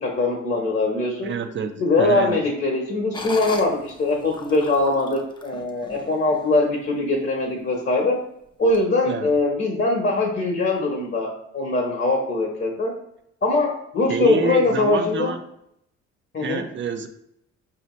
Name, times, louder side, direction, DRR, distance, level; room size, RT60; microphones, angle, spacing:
voice 1, 0.0-1.3 1.8-8.2 8.6-12.9 13.4-15.3 16.3-16.6, left 2 dB, 35° left, -1 dB, 1.0 m, -22 dB
voice 2, 1.2-2.4 9.1-9.3 14.1-15.4 16.4-17.1, right 5 dB, 40° right, 8 dB, 0.6 m, -28 dB
sound 1, 3.1-6.6 7.1-7.2 7.7-8.1 8.7-8.8, left 2 dB, 15° left, 0.6 m, -38 dB
5.0 x 2.8 x 3.1 m, 0.75 s
cardioid pair, 90°, 30 cm